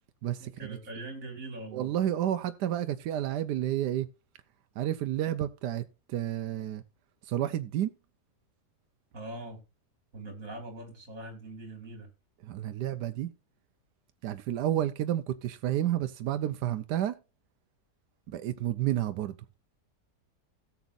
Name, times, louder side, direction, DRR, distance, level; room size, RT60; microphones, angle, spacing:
voice 1, 0.4-2.0 9.1-9.6 10.1-12.1, right 2 dB, 55° right, 3.0 m, -42 dB
voice 2, 1.7-4.1 4.8-5.8 6.1-6.8 7.3-7.9 12.4-13.3 14.2-17.2 18.3-19.3, right 12 dB, 80° right, 1.3 m, -30 dB
17.0 x 7.2 x 2.5 m
omnidirectional pair, 1.8 m